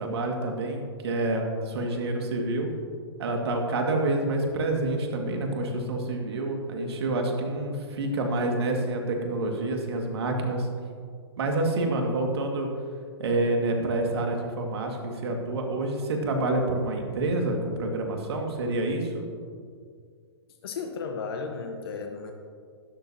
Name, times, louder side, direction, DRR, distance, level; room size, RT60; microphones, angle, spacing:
voice 1, 0.0-2.7 3.2-10.7 11.4-12.7 13.2-19.3, right 2 dB, 65° right, 2 dB, 2.1 m, -28 dB
voice 2, 20.6-22.3, left 5 dB, 60° left, 4 dB, 1.1 m, -34 dB
12.5 x 12.0 x 2.9 m, 2.1 s
hypercardioid pair, 130°, 14 cm